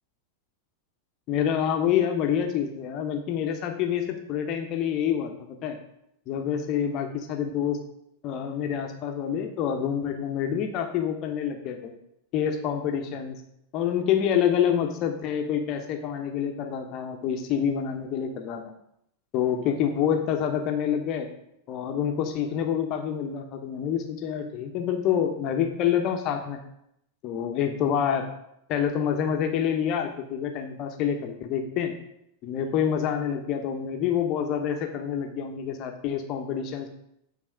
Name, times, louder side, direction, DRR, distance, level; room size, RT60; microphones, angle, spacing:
voice 1, 1.3-5.8 6.3-7.8 8.2-11.9 12.3-13.4 13.7-18.6 19.3-21.3 21.7-26.6 27.2-28.3 28.7-31.9 32.4-36.9, left 8 dB, 40° left, 5 dB, 1.1 m, -27 dB
8.8 x 4.1 x 6.3 m, 0.77 s
figure-of-eight pair, 90°, 0 cm